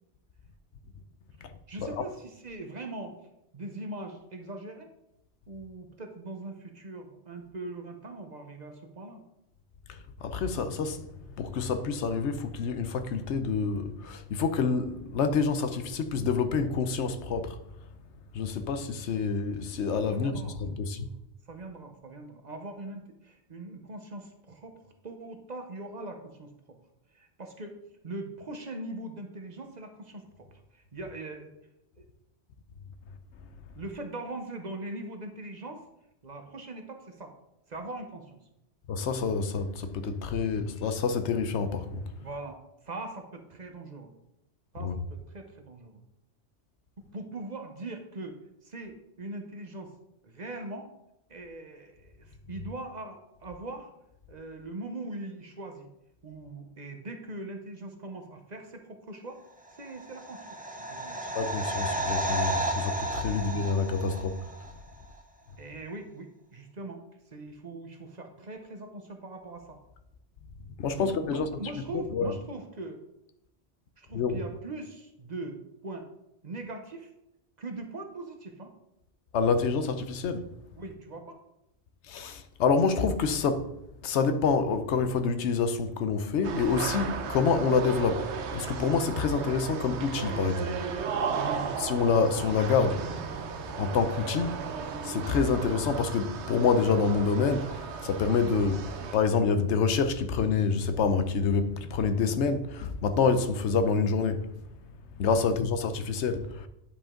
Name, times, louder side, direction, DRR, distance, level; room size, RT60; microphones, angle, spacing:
voice 1, 1.7-3.1 3.5-4.9 5.5-9.2 20.1-21.2 21.5-26.5 27.1-27.7 28.0-30.5 30.7-31.5 32.0-32.1 33.8-35.8 36.2-37.3 37.7-38.4 42.2-44.1 44.7-46.0 47.1-48.3 48.6-49.9 50.2-50.9 51.3-53.9 54.3-55.9 56.2-59.4 59.7-60.5 60.7-61.2 65.6-67.0 67.3-69.8 70.9-73.0 74.0-76.1 76.4-77.1 77.6-78.7 80.7-81.4 91.3-91.7 105.4-105.5, right 2 dB, 40° right, 1.0 m, -41 dB
voice 2, 9.9-11.0 11.4-17.6 18.3-21.1 38.9-42.0 44.8-44.9 61.3-64.4 70.8-71.5 71.9-72.3 74.1-74.4 79.3-80.5 82.1-83.7 84.0-90.9 91.8-93.2 93.7-104.5 105.2-106.7, left 5 dB, 90° left, 1.0 m, -27 dB
sound 1, 59.8-64.7 65.0-65.1, right 1 dB, 10° right, 0.5 m, -33 dB
sound 2, 86.4-99.2, right 6 dB, 85° right, 1.0 m, -35 dB
10.0 x 5.1 x 3.7 m
omnidirectional pair, 1.1 m